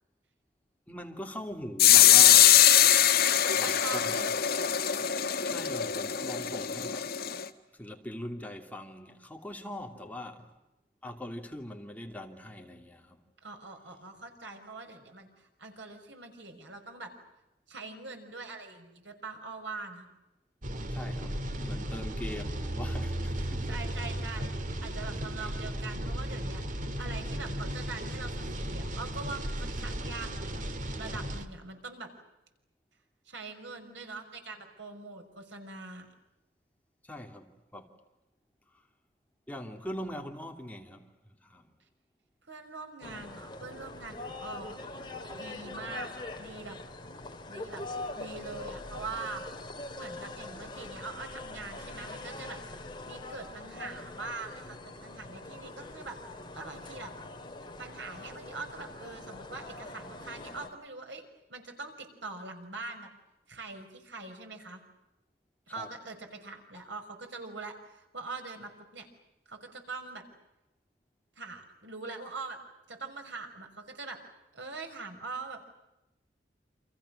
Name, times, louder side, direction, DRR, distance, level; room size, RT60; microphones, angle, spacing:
voice 1, 0.9-2.6 3.6-4.1 5.4-7.1 7.7-10.5 11.0-13.2 20.9-23.7 25.4-25.5 37.0-37.9 39.5-41.7 65.8-65.9, left 1 dB, 10° left, 2.7 m, -42 dB
sound 1, 1.8-7.4, left 11 dB, 60° left, 1.7 m, -22 dB
voice 2, 3.3-4.3 13.4-17.1 17.7-20.1 23.3-24.5 24.8-32.1 33.3-36.1 42.5-44.8 45.3-46.1 46.4-46.8 47.5-47.8 48.1-49.4 50.0-52.6 53.1-56.2 56.5-57.1 57.8-61.2 61.5-63.1 63.5-64.8 65.7-69.1 69.5-70.2 71.4-72.6 72.9-74.2 74.5-75.7, right 3 dB, 90° right, 5.9 m, -43 dB
sound 2, 20.6-31.5, right 1 dB, 45° right, 2.2 m, -35 dB
sound 3, 43.0-60.7, left 2 dB, 25° left, 3.2 m, -43 dB
29.5 x 27.5 x 6.6 m
head